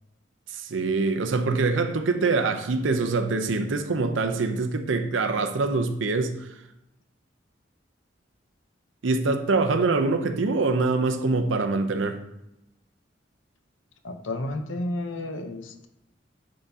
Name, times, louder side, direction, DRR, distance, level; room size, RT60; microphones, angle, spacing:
voice 1, 0.5-6.5 9.0-12.2, right 3 dB, 85° right, 0.6 m, -24 dB
voice 2, 14.0-15.9, left 1 dB, 85° left, 0.7 m, -32 dB
9.8 x 3.8 x 2.7 m
head